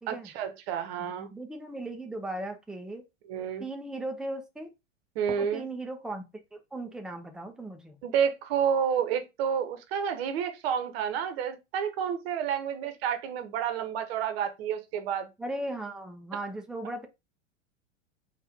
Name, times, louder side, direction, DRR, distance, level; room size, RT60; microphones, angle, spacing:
voice 1, 0.1-1.3 3.3-3.7 5.2-5.6 8.0-15.3, right 8 dB, 50° right, 1.0 m, -30 dB
voice 2, 1.0-3.0 3.6-4.7 5.3-6.3 6.5-8.0 15.4-17.1, right 1 dB, ahead, 0.6 m, -37 dB
4.4 x 2.5 x 3.5 m
figure-of-eight pair, 90°, 37 cm